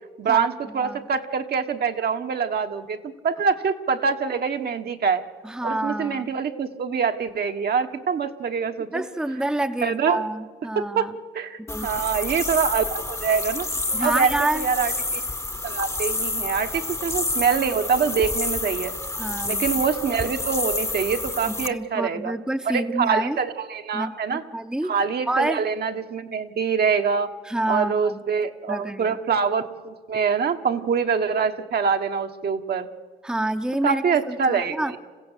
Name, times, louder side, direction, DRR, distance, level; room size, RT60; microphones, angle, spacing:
voice 1, 0.2-5.2 5.6-9.0 9.8-10.2 10.7-11.1 11.3-13.7 14.0-15.2 15.6-18.9 19.5-22.3 22.6-24.4 24.8-27.3 27.7-32.9 33.8-35.0, right 6 dB, 55° right, 6 dB, 1.3 m, -25 dB
voice 2, 5.4-6.3 8.9-11.1 11.7-11.9 13.9-14.7 19.2-19.7 21.7-23.4 23.9-24.9 25.3-25.6 27.5-28.2 28.7-29.2 33.2-34.9, right 1 dB, 5° right, 7 dB, 0.9 m, -27 dB
sound 1, 11.7-21.7, left 2 dB, 15° left, 1.1 m, -29 dB
26.5 x 15.5 x 8.3 m, 1.5 s
cardioid pair, 90°, 20 cm